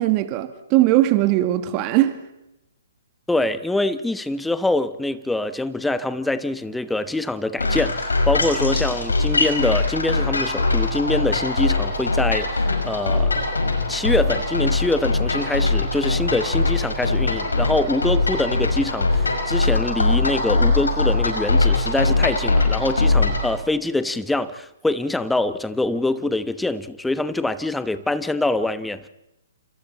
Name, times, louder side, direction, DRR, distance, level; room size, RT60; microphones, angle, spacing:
voice 1, 0.0-2.2, right 15 dB, 35° right, 10 dB, 1.8 m, -19 dB
voice 2, 3.3-13.4 13.9-29.1, left 2 dB, 5° left, 13 dB, 1.1 m, -24 dB
sound 1, 7.6-23.5, left 3 dB, 80° left, 5.7 m, -21 dB
30.0 x 28.0 x 4.2 m, 0.90 s
figure-of-eight pair, 125°, 0 cm